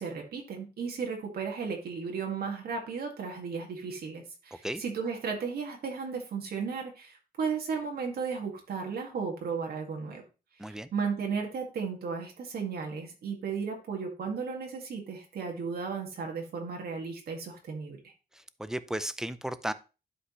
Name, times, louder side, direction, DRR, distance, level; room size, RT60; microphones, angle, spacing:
voice 1, 0.0-10.2 10.6-18.1, right 5 dB, 75° right, 1 dB, 2.1 m, -35 dB
voice 2, 18.3-19.7, right 1 dB, 5° right, 14 dB, 0.5 m, -35 dB
11.5 x 5.1 x 3.2 m, 0.31 s
wide cardioid pair, 140°, 16 cm